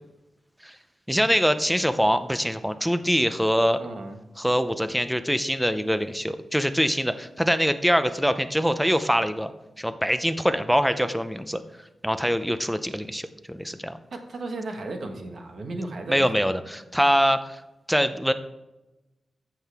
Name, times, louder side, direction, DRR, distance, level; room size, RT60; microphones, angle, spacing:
voice 1, 1.1-3.8 4.4-9.5 9.8-11.6 12.0-14.0 16.1-17.6 17.9-18.3, equal, ahead, 10 dB, 0.5 m, -24 dB
voice 2, 3.8-4.2 14.1-16.5, right 2 dB, 55° right, 4 dB, 1.4 m, -35 dB
13.5 x 7.6 x 3.5 m, 1.0 s
wide cardioid pair, 165°, 0 cm